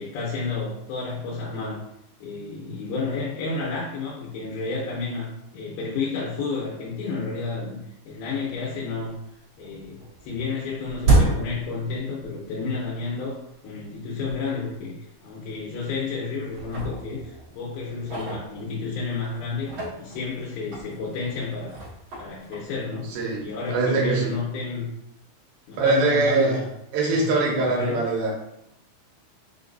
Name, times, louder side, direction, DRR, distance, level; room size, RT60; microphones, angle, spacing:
voice 1, 0.0-1.8 2.2-9.1 9.6-13.4 13.6-14.9 15.2-21.8 22.2-23.1 23.4-24.9 25.7-26.7 27.1-28.1, left 4 dB, 80° left, -4 dB, 2.7 m, -31 dB
sound 1, 8.7-9.3 9.6-12.5 12.8-12.9 13.7-13.8 14.3-14.4 14.7-14.9 15.6-16.1 16.4-19.1 19.5-23.4, right 2 dB, 50° right, 1.7 m, -29 dB
voice 2, 23.1-24.4 25.8-26.6 26.9-28.3, right 3 dB, 80° right, -1 dB, 2.4 m, -22 dB
5.8 x 2.8 x 2.6 m, 0.82 s
omnidirectional pair, 4.5 m